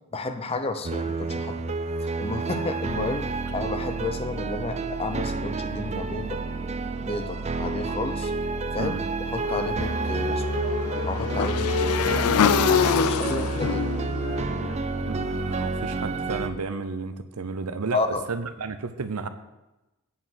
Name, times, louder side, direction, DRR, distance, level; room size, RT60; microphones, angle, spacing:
voice 1, 0.1-1.8 2.2-3.3 3.5-6.4 7.0-8.3 8.7-8.9 9.2-10.6 11.1-12.4 12.7-13.9 17.9-18.2, left 3 dB, 25° left, 8 dB, 0.6 m, -31 dB
sound 1, 0.8-16.5, right 3 dB, 30° right, 0.4 m, -29 dB
Motorcycle / Engine, 9.4-15.6, left 7 dB, 70° left, 0.4 m, -26 dB
voice 2, 15.0-19.3, right 4 dB, 80° right, 10 dB, 0.7 m, -32 dB
8.5 x 4.9 x 7.3 m, 1.0 s
head